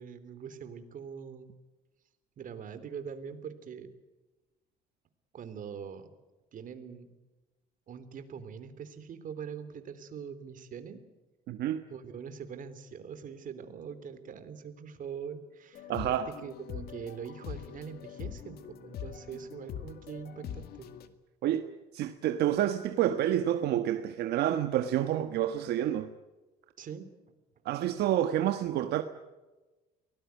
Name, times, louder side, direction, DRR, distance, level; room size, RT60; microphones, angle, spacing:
voice 1, 0.0-1.6 2.4-3.9 5.3-6.1 6.5-7.1 7.9-11.0 11.9-20.9 26.8-27.1, right 7 dB, 50° right, 3.3 m, -43 dB
voice 2, 11.5-11.8 15.9-16.3 21.4-21.7 21.9-26.1 27.6-29.0, right 11 dB, 75° right, 1.3 m, -28 dB
sound 1, 15.7-21.1, left 9 dB, 70° left, 2.1 m, -43 dB
24.0 x 19.0 x 9.5 m
cardioid pair, 110°, 17 cm